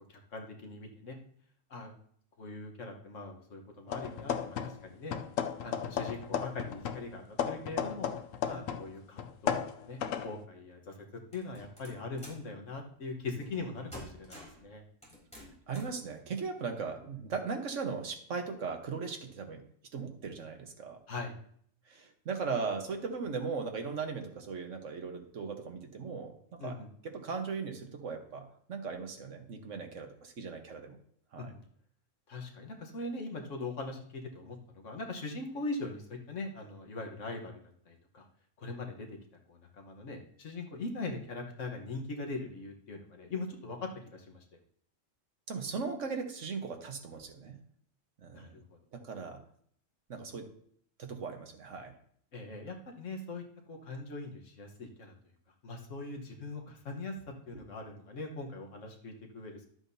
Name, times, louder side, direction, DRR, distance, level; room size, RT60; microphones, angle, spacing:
voice 1, 0.1-1.2 1.7-1.9 2.4-5.2 5.6-8.1 8.4-9.6 9.8-10.9 11.3-14.8 21.1-21.3 26.6-26.9 31.4-31.6 32.3-38.3 38.6-39.1 39.5-44.4 48.3-48.6 52.3-55.1 55.6-57.1 57.5-59.7, left 3 dB, 70° left, 2 dB, 1.6 m, -41 dB
sound 1, 3.9-4.9 5.1-8.9 9.2-10.3, left 8 dB, 85° left, 1.0 m, -35 dB
sound 2, 11.3-12.5 13.4-13.6 13.9-14.6 15.0-16.0, left 1 dB, 5° left, 3.6 m, -49 dB
voice 2, 15.4-19.6 19.9-21.0 21.9-26.8 27.0-31.0 31.3-31.5 45.5-47.6 48.2-48.5 48.9-49.4 50.1-50.5 51.0-51.9, right 5 dB, 70° right, 4 dB, 1.5 m, -38 dB
12.0 x 7.9 x 2.8 m, 0.63 s
omnidirectional pair, 1.3 m